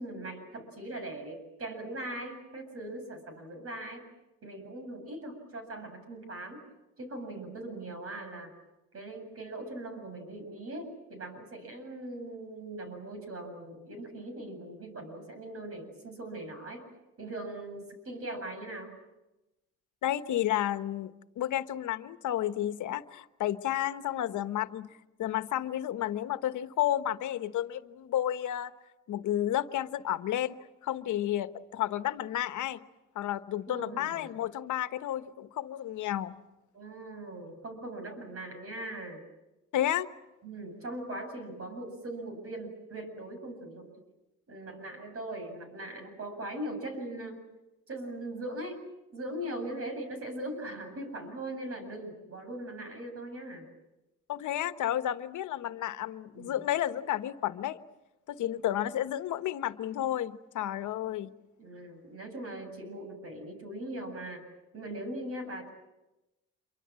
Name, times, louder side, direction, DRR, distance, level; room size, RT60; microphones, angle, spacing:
voice 1, 0.0-4.0 4.4-6.6 7.0-8.5 8.9-16.9 17.2-19.0 33.7-34.3 36.7-39.2 40.4-43.9 44.5-47.4 47.9-48.8 49.1-53.7 56.3-56.5 61.6-64.5 64.7-65.7, right 1 dB, 50° right, 7 dB, 7.8 m, -40 dB
voice 2, 20.0-24.9 25.2-28.7 29.1-32.8 33.1-36.4 39.7-40.1 54.3-57.8 58.3-61.3, left 12 dB, 80° left, 11 dB, 1.2 m, -31 dB
27.5 x 24.0 x 7.6 m, 0.97 s
cardioid pair, 90°, 30 cm